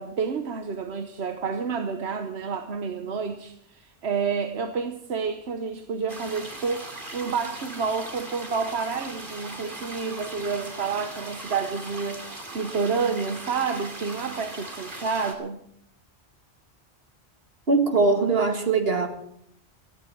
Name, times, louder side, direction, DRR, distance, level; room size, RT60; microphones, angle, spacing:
voice 1, 0.0-15.6, right 5 dB, 90° right, 1.3 m, -29 dB
sound 1, 6.1-15.3, right 2 dB, 55° right, 2.8 m, -39 dB
voice 2, 17.7-19.1, right 3 dB, 70° right, 2.2 m, -21 dB
16.5 x 14.0 x 4.6 m
omnidirectional pair, 1.1 m